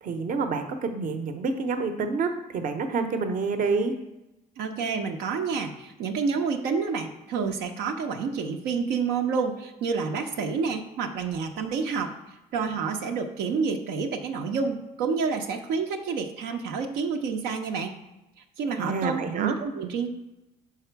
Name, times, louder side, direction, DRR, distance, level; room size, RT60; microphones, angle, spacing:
voice 1, 0.0-3.9 18.8-19.6, right 4 dB, 55° right, 7 dB, 0.8 m, -28 dB
voice 2, 4.6-12.1 12.5-17.9 18.6-20.1, right 5 dB, 85° right, 4 dB, 0.7 m, -29 dB
5.9 x 4.9 x 4.5 m, 0.96 s
cardioid pair, 110°, 17 cm